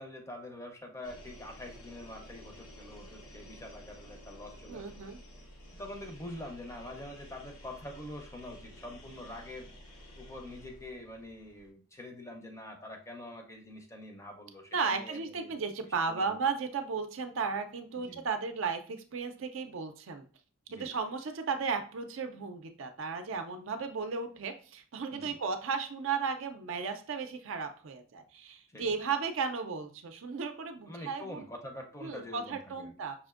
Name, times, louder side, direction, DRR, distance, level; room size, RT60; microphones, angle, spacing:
voice 1, 0.0-4.9 5.7-9.7 10.2-15.6 15.9-16.4 17.9-18.3 20.7-20.9 25.1-25.4 28.7-28.9 30.9-32.9, left 1 dB, 15° left, 3 dB, 0.5 m, -45 dB
sound 1, 1.0-11.7, equal, 85° left, 1.0 m, -52 dB
voice 2, 4.7-5.2 14.7-20.2 20.7-31.4 32.0-33.1, right 5 dB, 60° right, 7 dB, 0.4 m, -35 dB
5.5 x 2.5 x 2.4 m, 0.39 s
head